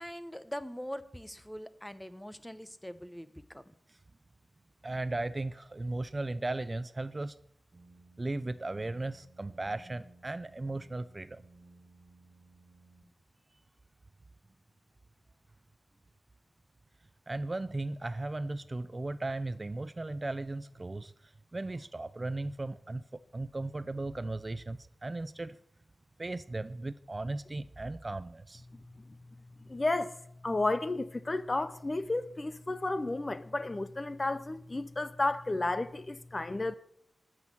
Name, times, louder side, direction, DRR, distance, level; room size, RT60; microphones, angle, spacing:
voice 1, 0.0-3.7, equal, 5° left, 0.9 m, -43 dB
voice 2, 4.8-7.4 8.2-11.4 17.3-25.6 26.2-28.7, right 2 dB, 25° right, 0.4 m, -36 dB
sound 1, 7.7-13.1, right 2 dB, 40° right, 1.7 m, -58 dB
voice 3, 29.7-30.2 30.4-36.8, left 2 dB, 25° left, 0.6 m, -32 dB
13.0 x 6.3 x 9.8 m
wide cardioid pair, 115°, 0 cm